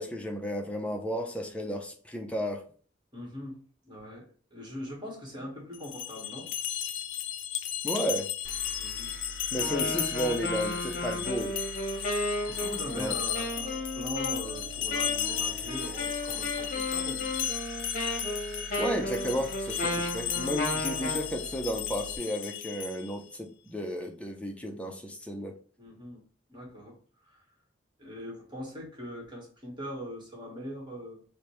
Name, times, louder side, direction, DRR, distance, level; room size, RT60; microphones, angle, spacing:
voice 1, 0.0-2.6 7.8-8.3 9.5-11.5 12.9-13.1 18.8-25.6, equal, 5° left, 3 dB, 0.5 m, -33 dB
voice 2, 3.1-4.2 4.5-6.5 8.8-9.1 12.1-17.3 25.8-26.2 26.5-27.4 28.0-31.2, equal, 25° right, -2 dB, 1.3 m, -41 dB
sound 1, 5.7-23.2, left 10 dB, 65° left, 0.4 m, -35 dB
sound 2, 8.4-22.2, right 3 dB, 55° right, 0.5 m, -45 dB
Wind instrument woodwind instrument, 9.5-21.3, left 1 dB, 45° left, 0.9 m, -34 dB
5.0 x 2.1 x 3.0 m, 0.44 s
head